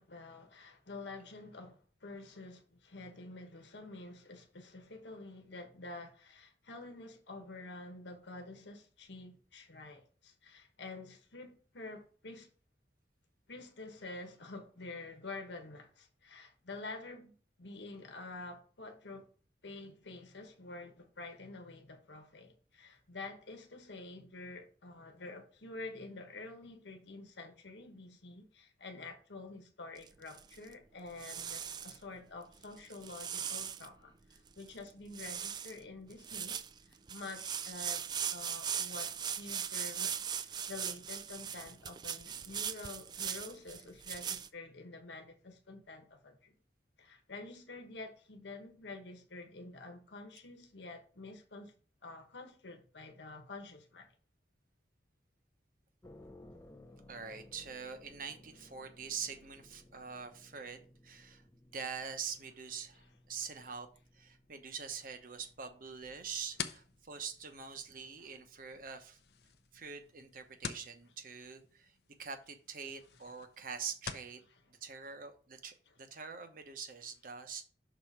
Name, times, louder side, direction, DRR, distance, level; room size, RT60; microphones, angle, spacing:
voice 1, 0.0-12.5 13.5-19.3 19.6-36.6 36.9-46.5 47.0-51.7 52.0-54.1 58.6-58.7 63.0-63.2 68.2-68.4 71.1-71.2 73.2-73.3 74.5-74.6 75.8-76.0, left 2 dB, 85° left, 1.2 m, -48 dB
sound 1, 30.0-30.7 31.2-32.0 32.6-33.9 34.4-34.5 34.6-34.9 35.1-35.8 36.1-44.5, right 8 dB, 25° right, 0.3 m, -39 dB
sound 2, 56.0-70.8, left 1 dB, 15° left, 0.6 m, -61 dB
voice 2, 57.1-61.4 61.7-63.9 64.1-69.2 69.7-71.9 72.2-74.4 74.7-77.6, right 6 dB, 50° right, 0.9 m, -44 dB
sound 3, 66.0-74.4, left 7 dB, 65° left, 0.6 m, -48 dB
6.2 x 4.2 x 4.8 m
head